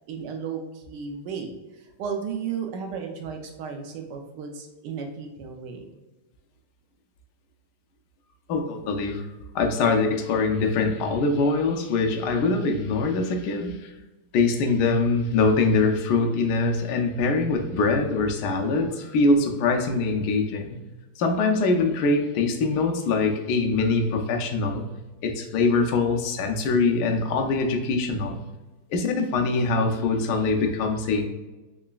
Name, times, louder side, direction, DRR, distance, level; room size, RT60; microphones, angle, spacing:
voice 1, 0.1-5.9, right 6 dB, 75° right, 3 dB, 1.1 m, -34 dB
voice 2, 8.5-9.2 9.5-13.9 14.3-20.8 21.2-24.9 25.2-28.4 28.9-31.2, left 3 dB, 75° left, 4 dB, 1.0 m, -23 dB
3.9 x 3.1 x 2.3 m, 1.1 s
omnidirectional pair, 2.1 m